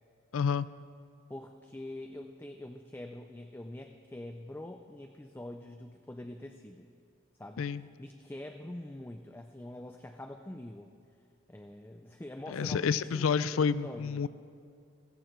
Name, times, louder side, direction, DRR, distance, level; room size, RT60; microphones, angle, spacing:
voice 1, 0.3-0.7 7.6-7.8 12.5-14.3, left 6 dB, 85° left, 17 dB, 0.4 m, -29 dB
voice 2, 1.3-6.9 7.4-10.9 11.5-14.2, left 1 dB, 10° left, 5 dB, 0.4 m, -45 dB
15.5 x 14.5 x 4.5 m, 2.4 s
head